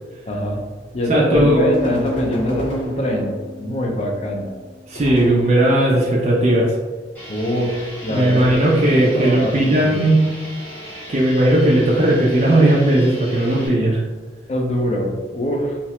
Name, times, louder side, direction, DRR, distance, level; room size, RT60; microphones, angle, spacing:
voice 1, 0.3-0.6 0.9-4.6 7.3-8.5 8.9-10.2 14.5-15.8, equal, 35° left, 1 dB, 0.4 m, -24 dB
voice 2, 1.1-1.7 4.9-6.7 8.1-10.2 11.1-14.0, right 1 dB, 35° right, -4 dB, 0.4 m, -16 dB
sound 1, 1.3-5.2, left 3 dB, 85° right, 0.5 m, -31 dB
sound 2, 1.7-3.7 4.9-6.2 8.4-9.4, equal, 75° left, 0.9 m, -34 dB
sound 3, 7.1-13.7, equal, 10° left, 0.8 m, -36 dB
2.8 x 2.1 x 2.9 m, 1.3 s
head